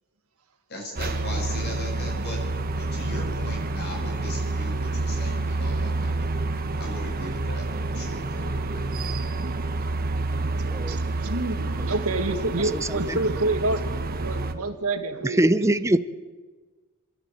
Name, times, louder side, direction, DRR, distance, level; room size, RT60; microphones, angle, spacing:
voice 1, 0.7-2.4 2.8-6.3 6.8-7.7 7.9-9.1, left 1 dB, 50° left, 0 dB, 7.0 m, -38 dB
sound 1, 1.0-14.5, right 2 dB, 45° right, 1.2 m, -28 dB
voice 2, 10.9-13.8 14.2-15.4, right 2 dB, 90° right, 6 dB, 2.1 m, -27 dB
voice 3, 12.7-13.2 15.2-16.0, right 1 dB, 15° right, 12 dB, 0.7 m, -22 dB
28.0 x 11.5 x 9.1 m, 1.4 s
head